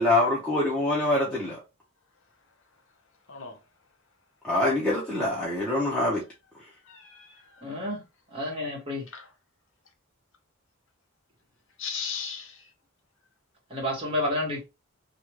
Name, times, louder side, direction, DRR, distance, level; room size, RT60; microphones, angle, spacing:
voice 1, 0.0-1.6 4.4-6.2, left 2 dB, 5° left, 0.7 m, -25 dB
voice 2, 3.3-3.6 6.9-7.6 9.1-9.3 11.8-12.7, left 6 dB, 65° left, 0.8 m, -37 dB
voice 3, 7.6-8.0 8.3-9.1 13.7-14.6, left 1 dB, 25° right, 1.3 m, -30 dB
3.2 x 2.4 x 3.0 m
head